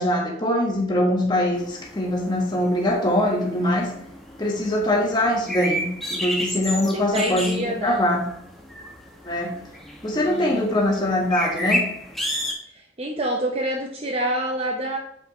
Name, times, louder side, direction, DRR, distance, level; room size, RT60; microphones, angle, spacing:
voice 1, 0.0-3.9 4.4-8.3 9.2-9.6 10.0-11.9, left 1 dB, 25° left, 0 dB, 1.4 m, -23 dB
sound 1, 1.5-12.5, equal, ahead, 1.0 m, -32 dB
voice 2, 6.9-8.0 10.2-11.1 12.7-15.0, right 1 dB, 35° right, 1 dB, 0.7 m, -28 dB
8.3 x 5.2 x 3.0 m, 0.70 s
head